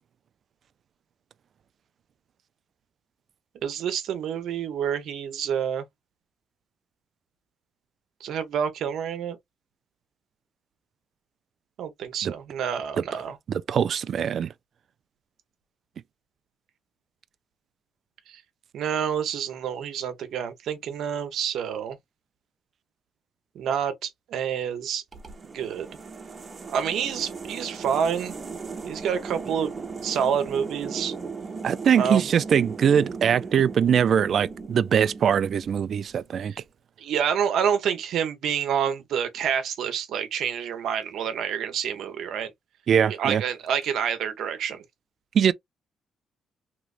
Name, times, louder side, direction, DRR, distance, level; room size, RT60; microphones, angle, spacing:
voice 1, 3.6-5.8 8.2-9.4 11.8-13.4 18.3-18.4 18.7-22.0 23.5-25.0 25.5-25.9 26.7-28.3 28.8-29.8 30.0-31.1 32.0-32.2 36.5-36.6 37.0-42.5 43.1-44.8, right 8 dB, 75° right, 0.8 m, -28 dB
voice 2, 13.2-14.5 31.6-36.5 42.9-43.4 45.3-45.5, right 8 dB, 60° right, 0.3 m, -22 dB
sound 1, 25.1-36.2, right 4 dB, 35° right, 1.0 m, -37 dB
3.1 x 3.0 x 2.5 m
cardioid pair, 90°, 0 cm